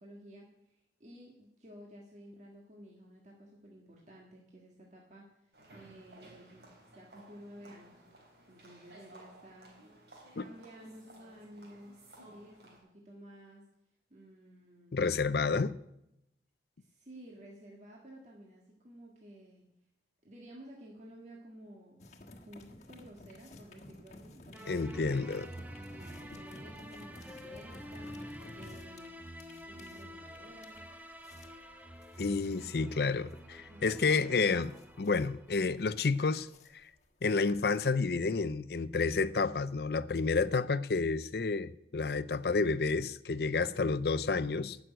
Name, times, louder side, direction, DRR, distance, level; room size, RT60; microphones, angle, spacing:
voice 1, 0.0-6.6 6.9-8.0 8.5-9.8 10.4-13.6 14.1-15.4 16.8-19.6 20.2-22.2 22.5-24.8 25.9-30.8 33.7-34.6 43.5-44.0, right 1 dB, 40° right, 1.7 m, -53 dB
sound 1, 5.5-12.8, right 1 dB, 65° right, 3.9 m, -57 dB
voice 2, 14.9-15.7 24.7-25.5 32.2-34.7 35.0-36.5 37.2-44.8, left 4 dB, 60° left, 0.5 m, -30 dB
sound 2, 22.0-38.3, left 1 dB, 40° left, 1.5 m, -53 dB
sound 3, 24.5-35.9, equal, 10° right, 0.9 m, -48 dB
12.5 x 6.3 x 9.3 m
head